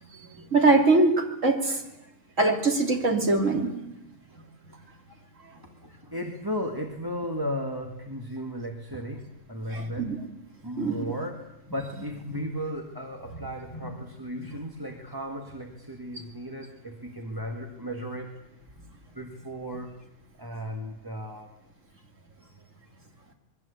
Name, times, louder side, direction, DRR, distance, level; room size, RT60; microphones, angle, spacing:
voice 1, 0.3-1.8 2.4-3.7 9.7-10.2 10.8-11.1 12.3-12.4 14.5-14.6, right 3 dB, 75° right, 2 dB, 3.4 m, -23 dB
voice 2, 6.0-10.1 10.6-18.4 19.1-20.0 20.4-21.5, equal, 15° right, 2 dB, 1.9 m, -35 dB
27.0 x 22.0 x 8.3 m, 0.89 s
omnidirectional pair, 1.3 m